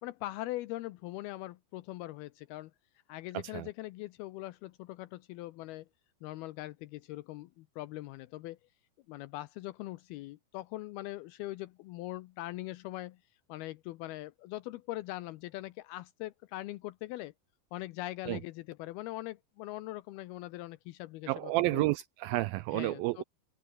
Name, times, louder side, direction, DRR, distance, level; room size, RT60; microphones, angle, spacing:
voice 1, 0.0-2.7 3.1-5.9 6.2-8.6 9.1-13.2 13.5-17.3 17.7-21.9 22.7-23.2, left 17 dB, 80° left, 2.6 m, -41 dB
voice 2, 21.3-23.2, right 19 dB, 80° right, 2.2 m, -30 dB
omnidirectional pair, 4.6 m